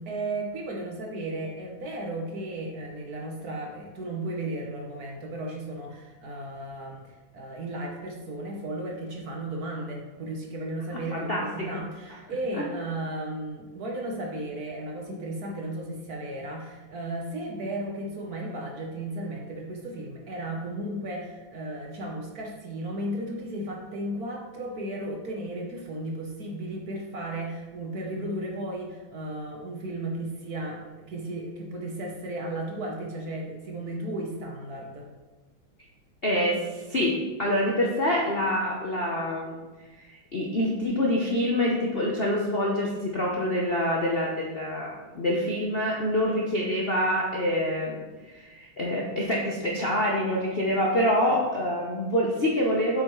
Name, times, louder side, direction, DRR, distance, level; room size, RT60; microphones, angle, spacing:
voice 1, 0.0-35.1, right 1 dB, 55° right, 0 dB, 1.3 m, -35 dB
voice 2, 11.1-11.7 12.6-12.7 36.2-39.6 40.3-48.0 48.3-53.0, left 1 dB, 50° left, -2 dB, 0.7 m, -26 dB
8.3 x 5.9 x 3.1 m, 1.2 s
omnidirectional pair, 2.3 m